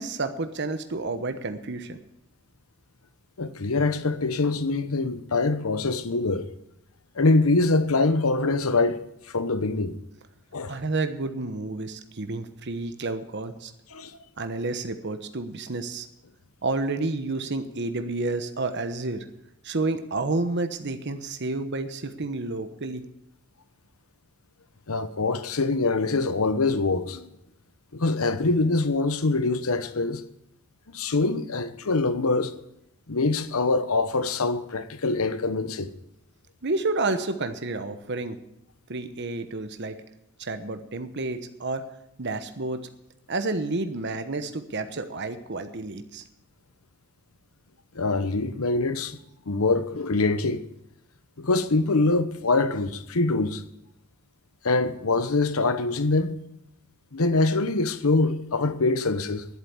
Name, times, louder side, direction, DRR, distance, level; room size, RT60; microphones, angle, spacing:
voice 1, 0.0-2.0 10.7-13.7 14.4-16.1 16.6-19.2 19.6-23.0 36.6-38.4 38.9-40.0 40.4-41.8 42.2-42.9 43.3-46.2, right 3 dB, 55° right, 1.1 m, -30 dB
voice 2, 3.4-6.5 7.2-9.0 9.3-9.9 10.5-10.7 13.9-14.1 24.9-27.2 27.9-30.2 30.9-32.5 33.1-35.9 47.9-49.2 49.5-50.6 51.4-53.6 54.6-56.4 57.1-59.5, left 3 dB, 90° left, 1.0 m, -24 dB
11.5 x 8.2 x 9.4 m
head